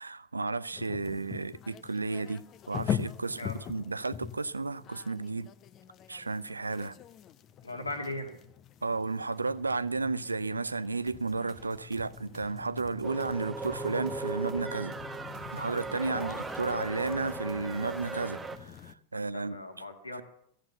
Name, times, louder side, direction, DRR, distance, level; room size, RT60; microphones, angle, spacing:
voice 1, 0.0-5.5 6.1-6.9 8.8-14.9 15.5-19.6, right 3 dB, 80° right, 0.5 m, -33 dB
sound 1, 0.7-18.9, left 9 dB, 30° left, 0.7 m, -43 dB
voice 2, 7.6-8.3 16.1-16.4 19.1-20.2, left 2 dB, 80° left, 2.2 m, -39 dB
sound 2, 11.1-17.9, right 3 dB, 30° right, 1.1 m, -55 dB
sound 3, 13.0-18.6, right 4 dB, 10° right, 1.2 m, -38 dB
14.5 x 8.9 x 7.2 m
figure-of-eight pair, 90°, 0 cm